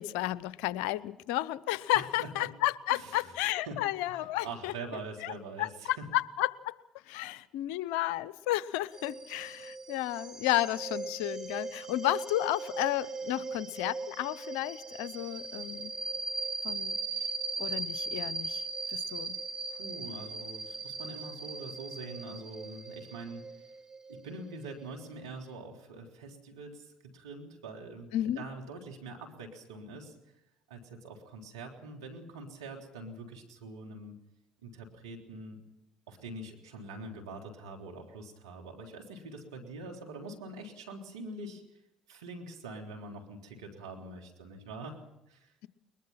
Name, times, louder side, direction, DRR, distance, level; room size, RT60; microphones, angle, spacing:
voice 1, 0.0-4.7 5.2-5.3 5.6-6.7 7.1-15.9 16.6-17.0 17.6-18.6 18.9-19.4 28.1-28.5, left 15 dB, 75° left, 18 dB, 0.8 m, -32 dB
voice 2, 1.9-2.5 2.9-3.4 3.6-3.8 4.1-6.1 19.7-23.7 24.1-30.2 30.7-34.2 34.6-35.6 36.1-41.8 42.1-45.5, right 2 dB, 90° right, 2 dB, 3.5 m, -44 dB
sound 1, 8.9-25.2, right 4 dB, 30° right, 2.9 m, -39 dB
21.5 x 21.5 x 5.8 m, 0.89 s
hypercardioid pair, 65°, 2 cm